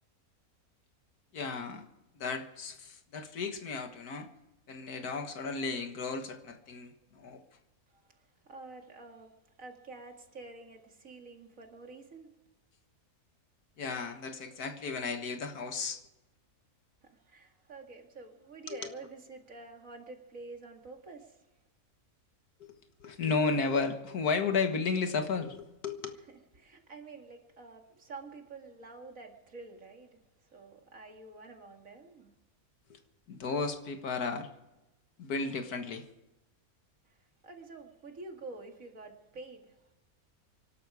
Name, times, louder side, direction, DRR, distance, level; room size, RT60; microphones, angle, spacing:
voice 1, 1.3-1.8 2.2-4.3 4.7-7.4 13.8-16.0 18.7-18.8 22.6-26.2 32.9-33.0 33.3-34.5 35.2-36.1, left 4 dB, 85° left, 1.9 m, -34 dB
voice 2, 7.9-9.3 9.6-12.3 17.0-21.5 26.2-30.2 30.5-32.3 37.0-37.2 37.4-39.8, right 3 dB, 60° right, 2.5 m, -48 dB
25.0 x 12.0 x 4.9 m
omnidirectional pair, 1.6 m